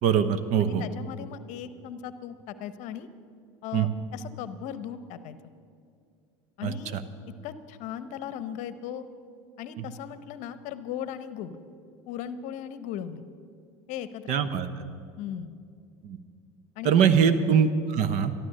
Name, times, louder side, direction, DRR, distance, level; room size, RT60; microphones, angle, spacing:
voice 1, 0.0-0.8 3.7-3.9 6.6-7.0 9.8-9.9 14.3-14.7 16.0-16.2 16.8-18.3, right 7 dB, 50° right, 12 dB, 0.9 m, -23 dB
voice 2, 0.6-3.1 3.6-5.4 6.6-7.0 7.4-9.0 9.6-11.6 12.1-13.2 13.9-14.3 15.2-15.5 16.8-17.0, left 9 dB, 55° left, 13 dB, 0.8 m, -37 dB
12.5 x 12.5 x 6.6 m, 2.4 s
hypercardioid pair, 85°, 15 cm